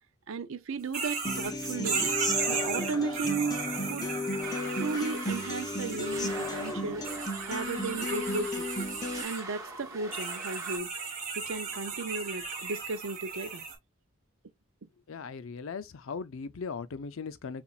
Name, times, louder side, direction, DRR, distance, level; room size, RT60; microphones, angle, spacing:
voice 1, 0.3-2.1 2.5-4.1 4.8-7.1 7.5-8.7 9.2-10.9 11.4-13.7 14.8-14.9, right 4 dB, 70° right, 0.6 m, -35 dB
sound 1, 0.9-6.7 7.0-9.4 10.1-13.7, right 5 dB, 40° right, 2.0 m, -35 dB
Human voice / Acoustic guitar, 1.2-9.2, left 2 dB, 20° left, 0.6 m, -34 dB
sound 2, 4.4-10.8, right 3 dB, 15° right, 2.3 m, -43 dB
voice 2, 15.1-17.6, left 5 dB, 70° left, 0.5 m, -38 dB
7.0 x 2.4 x 2.4 m
head